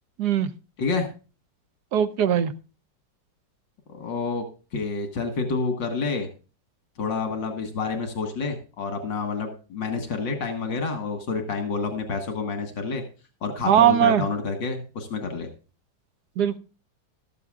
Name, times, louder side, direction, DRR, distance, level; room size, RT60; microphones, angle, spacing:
voice 1, 0.2-0.5 1.9-2.5 13.6-14.2 16.4-16.6, right 10 dB, 65° right, 12 dB, 1.4 m, -20 dB
voice 2, 3.9-4.4 4.7-6.3 7.0-13.0 13.4-15.5, left 4 dB, 85° left, 5 dB, 2.3 m, -28 dB
14.0 x 13.5 x 2.4 m, 0.34 s
omnidirectional pair, 1.9 m